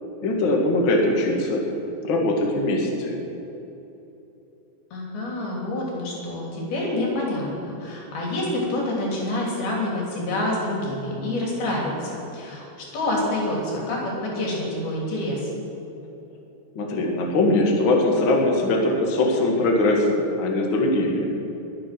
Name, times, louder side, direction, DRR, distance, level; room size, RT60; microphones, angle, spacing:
voice 1, 0.2-1.6 2.0-3.2 16.8-21.3, left 2 dB, 40° left, 0 dB, 2.1 m, -21 dB
voice 2, 4.9-15.5, left 1 dB, 80° left, -3 dB, 5.1 m, -27 dB
21.5 x 8.9 x 6.1 m, 3.0 s
omnidirectional pair, 4.3 m